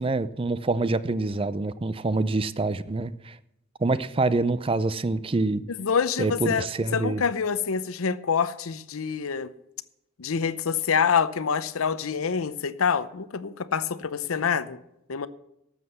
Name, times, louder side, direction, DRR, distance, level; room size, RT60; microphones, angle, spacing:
voice 1, 0.0-3.4 3.8-5.6 6.2-7.2, right 3 dB, 25° right, 15 dB, 0.4 m, -26 dB
voice 2, 5.8-6.7 6.9-9.5 10.2-14.8 15.1-15.3, left 6 dB, 85° left, 15 dB, 0.7 m, -26 dB
12.5 x 7.3 x 6.9 m, 0.84 s
head